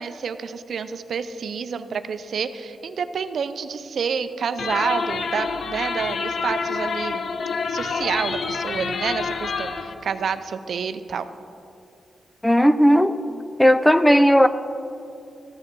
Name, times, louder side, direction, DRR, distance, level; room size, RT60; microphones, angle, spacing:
voice 1, 0.0-7.2 7.7-11.3, right 6 dB, 70° right, 11 dB, 0.5 m, -28 dB
sound 1, 4.6-9.9, left 5 dB, 65° left, 0.7 m, -27 dB
voice 2, 12.4-13.2 13.6-14.5, equal, 5° left, 12 dB, 0.4 m, -15 dB
14.0 x 6.3 x 6.0 m, 2.6 s
cardioid pair, 90°, 0 cm